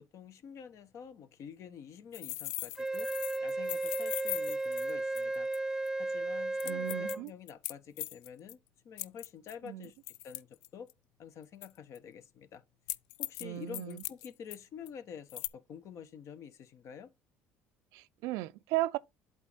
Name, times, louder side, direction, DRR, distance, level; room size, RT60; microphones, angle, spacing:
voice 1, 0.0-3.1 3.4-5.5 6.0-8.6 8.8-10.9 11.2-12.6 13.2-17.1, left 7 dB, 55° left, 1.0 m, -48 dB
sound 1, 2.1-5.6 5.9-6.0 6.6-8.5 9.0-10.9 11.6-12.0 12.9-13.4 13.7-14.6 14.9-15.0 15.3-15.5, left 18 dB, 75° left, 0.4 m, -40 dB
Wind instrument woodwind instrument, 2.8-7.2, right 2 dB, 10° right, 0.4 m, -34 dB
voice 2, 6.6-7.3 9.7-9.9 13.4-14.0 17.9-19.0, right 17 dB, 75° right, 0.4 m, -35 dB
8.1 x 3.7 x 4.0 m
supercardioid pair, 75°, 6 cm